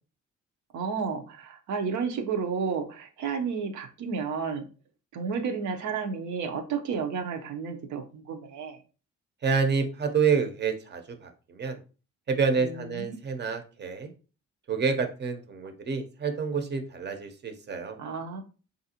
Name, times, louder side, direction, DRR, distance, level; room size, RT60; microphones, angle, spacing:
voice 1, 0.7-4.7 5.1-8.8 12.6-13.2 18.0-18.4, right 5 dB, 80° right, 5 dB, 0.7 m, -32 dB
voice 2, 9.4-11.8 12.3-14.1 14.7-18.0, right 5 dB, 35° right, 7 dB, 0.7 m, -28 dB
3.4 x 2.5 x 2.8 m, 0.35 s
cardioid pair, 90°, 30 cm